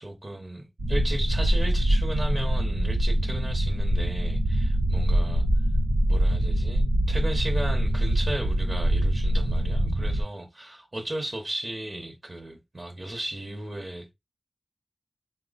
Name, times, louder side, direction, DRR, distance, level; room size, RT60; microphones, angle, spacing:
voice 1, 0.0-5.5 6.1-14.1, right 1 dB, 40° right, 0.9 m, -35 dB
sound 1, 0.8-10.2, right 1 dB, 80° right, 0.7 m, -24 dB
4.1 x 2.1 x 4.0 m
wide cardioid pair, 60°, 0 cm